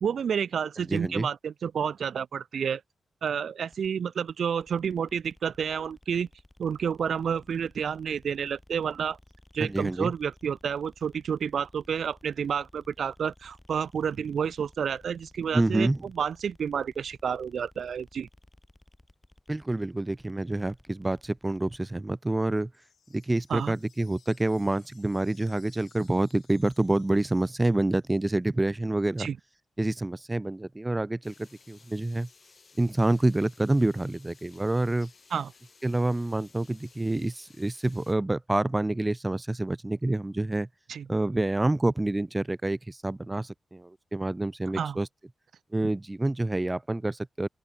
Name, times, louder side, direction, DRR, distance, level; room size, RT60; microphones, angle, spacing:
voice 1, 0.0-2.8 3.2-6.3 6.6-9.2 9.5-18.3 23.5-23.7 29.2-29.4 35.3-35.5 40.9-41.1 44.7-45.0, right 7 dB, 75° right, 0.5 m, -30 dB
voice 2, 0.9-1.3 9.6-10.1 15.5-16.0 19.5-22.7 23.1-29.3 29.8-31.3 31.7-32.3 32.8-35.1 35.8-40.7 41.1-45.1 45.7-47.5, right 2 dB, 20° right, 0.4 m, -27 dB
sound 1, 3.7-21.9, left 1 dB, 10° left, 5.5 m, -57 dB
sound 2, 22.7-28.2, left 7 dB, 75° left, 2.7 m, -61 dB
sound 3, 31.2-38.2, left 5 dB, 50° left, 1.9 m, -58 dB
open air
cardioid pair, 85°, 0 cm